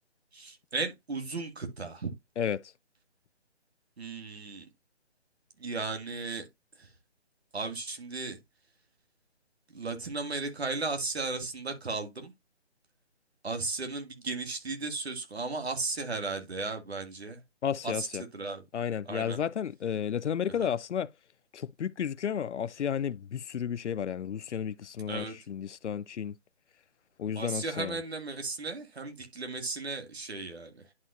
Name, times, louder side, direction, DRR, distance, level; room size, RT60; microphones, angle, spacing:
voice 1, 0.3-2.1 4.0-4.7 5.6-6.5 6.8-6.9 7.5-8.4 9.7-12.3 13.4-17.4 17.8-18.6 19.1-19.4 20.6-20.7 25.1-25.3 27.4-30.9, right 3 dB, 65° right, 2.1 m, -35 dB
voice 2, 2.4-2.7 17.6-18.2 18.7-21.1 21.5-26.3 27.2-28.0, left 8 dB, 80° left, 0.5 m, -32 dB
11.0 x 4.3 x 2.5 m
hypercardioid pair, 175°, 35 cm